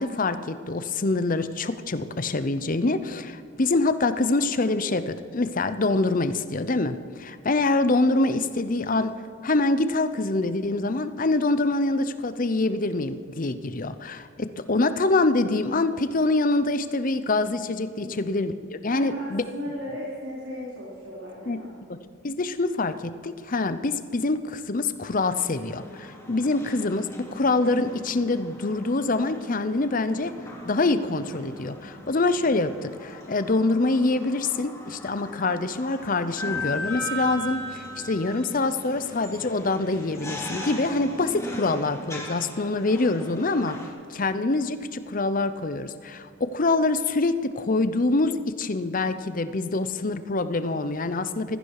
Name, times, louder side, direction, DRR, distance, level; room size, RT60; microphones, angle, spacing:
voice 1, 0.0-9.1 9.4-19.4 21.5-21.6 22.2-30.3 30.6-43.8 44.1-51.6, left 2 dB, 40° left, 12 dB, 0.7 m, -25 dB
voice 2, 18.9-21.7, left 1 dB, 80° right, -8 dB, 4.1 m, -36 dB
sound 1, 25.5-43.9, left 1 dB, 15° left, 2.7 m, -38 dB
15.5 x 14.0 x 4.8 m, 2.4 s
head